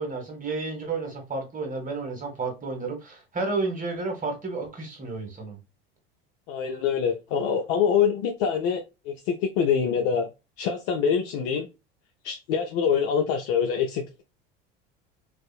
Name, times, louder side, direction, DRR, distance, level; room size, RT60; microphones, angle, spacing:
voice 1, 0.0-5.6, right 3 dB, 25° right, 1.2 m, -31 dB
voice 2, 6.5-10.3 10.6-11.7 12.2-14.2, left 7 dB, 60° left, 0.5 m, -25 dB
2.6 x 2.4 x 2.3 m
hypercardioid pair, 75°, 29 cm